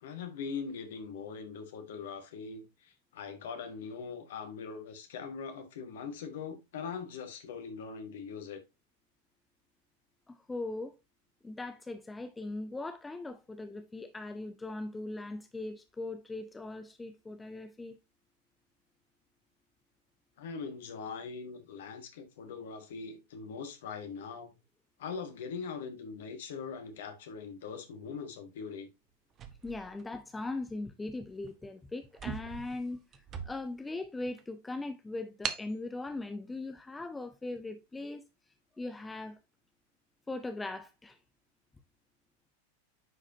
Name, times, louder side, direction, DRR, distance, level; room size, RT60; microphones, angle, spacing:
voice 1, 0.0-8.6 20.4-24.6 25.0-28.9, left 5 dB, 55° left, 1.7 m, -41 dB
voice 2, 10.3-11.0 11.4-18.0 29.6-33.0 33.4-38.2 38.8-39.4 40.3-41.2, left 2 dB, 10° left, 0.6 m, -39 dB
sound 1, 29.3-30.6 31.3-31.5 31.8-31.9 32.1-33.9 34.4-34.5 35.4-35.7, right 7 dB, 30° right, 1.0 m, -41 dB
9.7 x 4.8 x 2.7 m
figure-of-eight pair, 90°, 0 cm